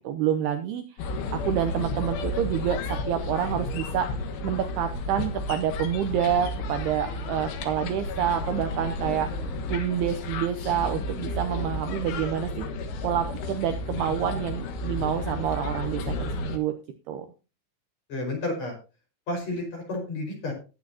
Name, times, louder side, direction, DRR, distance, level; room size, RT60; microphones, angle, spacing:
voice 1, 0.0-4.1 4.4-12.7 13.0-16.7 17.1-17.3, right 9 dB, 75° right, 7 dB, 2.5 m, -28 dB
sound 1, 1.0-16.6, left 2 dB, 80° left, 4.0 m, -32 dB
voice 2, 18.1-18.7 19.3-20.5, left 2 dB, 35° left, 1 dB, 6.1 m, -31 dB
19.0 x 8.5 x 2.8 m, 0.32 s
omnidirectional pair, 5.4 m